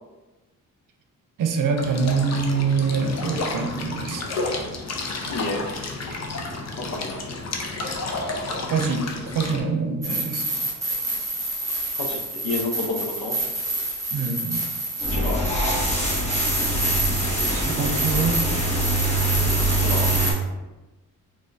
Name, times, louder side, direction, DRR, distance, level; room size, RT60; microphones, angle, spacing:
voice 1, 1.4-4.2 8.7-10.7 14.1-14.6 17.5-18.5, right 5 dB, 65° right, 5 dB, 0.6 m, -25 dB
sound 1, 1.8-9.6, left 2 dB, 50° left, 0.6 m, -31 dB
voice 2, 5.3-5.6 6.7-7.2 12.0-12.2 12.4-13.4 15.1-15.4 19.8-20.1, left 3 dB, 75° left, 0 dB, 0.9 m, -29 dB
sound 2, 10.0-20.3, right 1 dB, 10° right, 1.2 m, -28 dB
sound 3, 15.0-20.3, right 1 dB, 20° left, 1.1 m, -24 dB
3.5 x 3.2 x 2.6 m, 1.1 s
cardioid pair, 85°, 34 cm